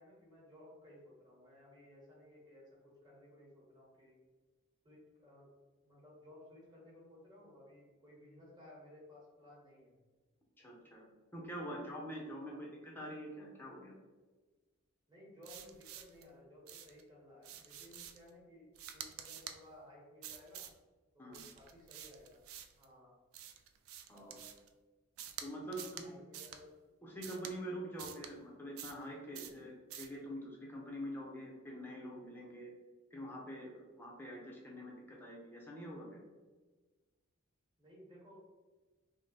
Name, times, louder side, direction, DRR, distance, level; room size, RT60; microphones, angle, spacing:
voice 1, 0.0-4.2 4.8-5.5 5.8-10.0 12.4-12.7 15.1-20.7 21.1-22.4 22.8-23.2 24.1-24.4 25.7-26.7 37.8-38.4, left 1 dB, 20° right, -6 dB, 1.3 m, -58 dB
voice 2, 10.6-11.0 11.3-12.6 12.8-13.9 21.2-21.4 24.1-24.4 25.4-26.1 27.0-32.7 33.1-36.2, equal, 10° left, -2 dB, 0.7 m, -45 dB
sound 1, 15.4-16.2 16.7-17.0 17.4-18.3 18.7-19.6 20.2-20.8 21.3-22.8 23.3-24.7 25.2-25.5 25.7-26.1 26.3-26.6 27.2-27.5 28.0-28.3 28.8-29.1 29.3-29.6 29.9-30.2, right 9 dB, 70° right, 0.3 m, -49 dB
3.7 x 2.1 x 4.0 m, 1.3 s
head